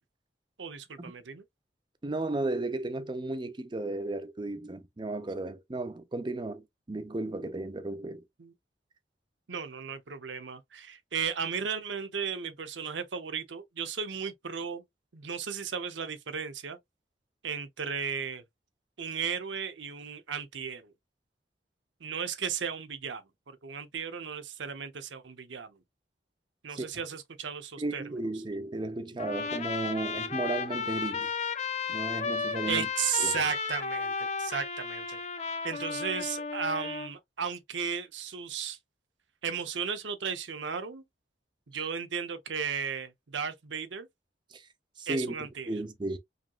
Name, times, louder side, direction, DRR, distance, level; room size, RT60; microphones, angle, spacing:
voice 1, 0.6-1.4 8.4-8.5 9.5-14.8 15.1-16.8 17.4-18.4 19.0-20.9 22.0-25.8 26.6-28.0 32.7-35.2 35.6-38.8 39.4-41.0 41.7-44.1 45.1-45.7, right 6 dB, 90° right, 0.7 m, -35 dB
voice 2, 2.0-8.2 26.7-26.9 27.8-31.3 31.9-32.9 33.2-33.4 44.5-44.7 45.0-45.3 45.7-46.2, right 2 dB, 25° right, 0.5 m, -34 dB
Trumpet, 29.2-37.1, left 5 dB, 40° left, 0.6 m, -34 dB
5.0 x 3.0 x 2.3 m
head